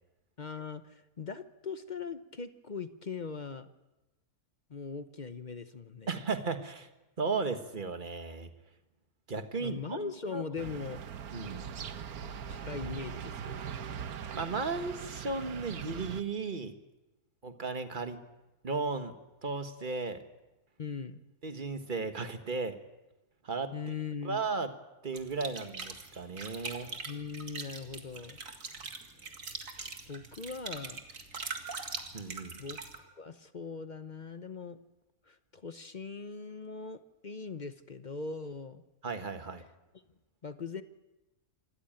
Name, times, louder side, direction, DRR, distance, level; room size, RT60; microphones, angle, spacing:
voice 1, 0.4-3.7 4.7-6.2 9.6-11.0 12.5-13.7 20.8-21.2 23.7-24.5 27.0-28.4 30.1-31.0 32.6-34.8 35.3-38.8 40.4-40.8, left 5 dB, 40° left, 11 dB, 0.8 m, -40 dB
voice 2, 6.1-6.9 7.2-8.5 9.3-10.4 11.3-11.7 14.3-16.7 17.4-18.2 18.6-19.1 19.4-20.2 21.4-22.8 23.4-23.7 24.2-24.7 25.0-26.9 32.1-32.6 39.0-39.6, right 4 dB, 35° right, 8 dB, 1.6 m, -35 dB
sound 1, 10.6-16.2, right 7 dB, 75° right, 1.5 m, -41 dB
sound 2, 25.1-33.0, right 4 dB, 60° right, 2.4 m, -42 dB
26.5 x 14.5 x 9.0 m, 1.0 s
omnidirectional pair, 1.6 m